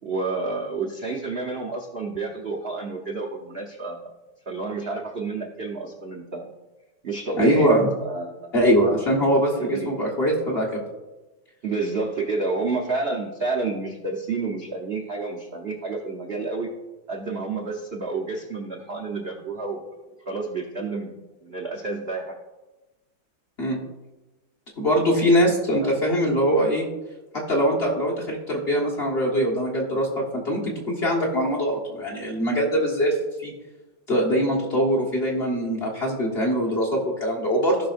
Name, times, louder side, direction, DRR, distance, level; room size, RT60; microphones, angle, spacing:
voice 1, 0.0-4.1 4.5-6.5 7.0-8.5 9.6-9.9 11.6-16.7 17.1-19.9 20.3-22.3 25.8-25.9, right 3 dB, 55° right, -1 dB, 0.6 m, -29 dB
voice 2, 7.4-7.9 8.5-10.7 23.6-23.8 24.8-26.9 27.5-33.5 34.1-37.9, equal, 30° left, -3 dB, 1.5 m, -22 dB
16.0 x 5.8 x 2.5 m, 1.1 s
omnidirectional pair, 2.3 m